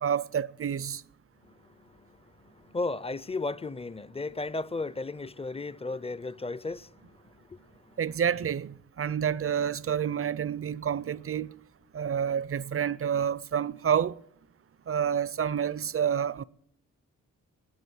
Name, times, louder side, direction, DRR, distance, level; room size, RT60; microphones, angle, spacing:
voice 1, 0.0-1.0 8.0-11.5 11.9-14.2 14.9-16.4, right 8 dB, 40° right, 0.5 m, -29 dB
voice 2, 1.4-8.0, left 3 dB, 15° left, 0.5 m, -36 dB
20.5 x 7.7 x 6.2 m
supercardioid pair, 40°, 35 cm